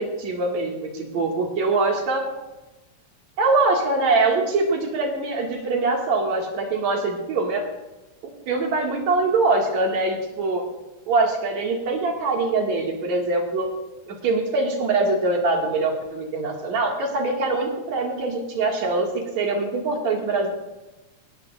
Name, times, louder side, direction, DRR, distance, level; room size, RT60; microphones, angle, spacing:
voice 1, 0.0-2.3 3.4-7.6 8.5-10.6 11.1-13.7 14.1-20.5, right 3 dB, 70° right, 0 dB, 3.4 m, -23 dB
19.0 x 14.0 x 2.6 m, 1.0 s
omnidirectional pair, 3.3 m